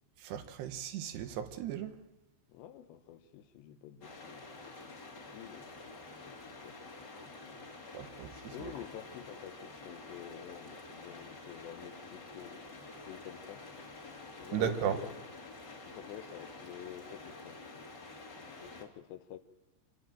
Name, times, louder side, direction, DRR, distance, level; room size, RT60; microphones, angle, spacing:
voice 1, 0.2-2.0 7.9-8.7 14.5-15.0, right 8 dB, 75° right, 3.1 m, -36 dB
voice 2, 2.5-5.8 6.2-7.7 8.5-12.6 13.1-13.7 14.4-15.1 15.9-17.9 18.6-19.4, left 10 dB, 80° left, 3.2 m, -49 dB
sound 1, 4.0-18.8, left 3 dB, 35° left, 2.1 m, -49 dB
26.5 x 11.0 x 9.0 m
omnidirectional pair, 5.0 m